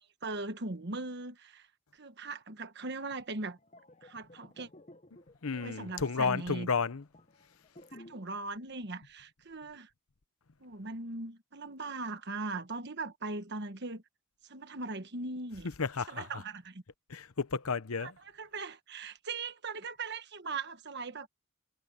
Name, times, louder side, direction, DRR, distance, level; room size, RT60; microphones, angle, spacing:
voice 1, 0.2-1.7 1.9-3.6 4.0-4.7 5.5-6.7 7.9-9.9 10.6-14.0 14.5-15.7 16.1-16.8 18.0-18.1 18.4-21.3, right 3 dB, 50° right, 1.4 m, -39 dB
sound 1, 3.6-8.4 8.6-8.9, left 1 dB, 30° left, 1.0 m, -55 dB
voice 2, 5.4-7.0 15.8-16.4 17.1-18.1, left 5 dB, 80° left, 0.9 m, -32 dB
head